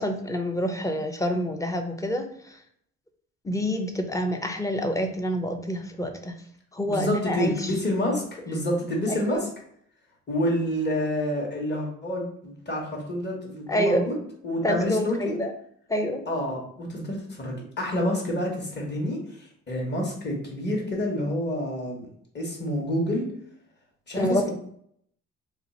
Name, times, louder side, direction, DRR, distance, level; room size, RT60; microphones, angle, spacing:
voice 1, 0.0-2.6 3.4-6.4 6.7-7.7 9.1-9.4 13.7-14.1 14.6-15.5 15.9-16.2 24.2-24.5, equal, 10° left, 4 dB, 0.5 m, -27 dB
voice 2, 6.8-9.5 10.3-14.2 14.4-15.4 16.3-22.1 22.3-23.3 24.1-24.5, left 1 dB, 35° left, -1 dB, 1.3 m, -28 dB
2.8 x 2.4 x 4.1 m, 0.66 s
cardioid pair, 90°, 30 cm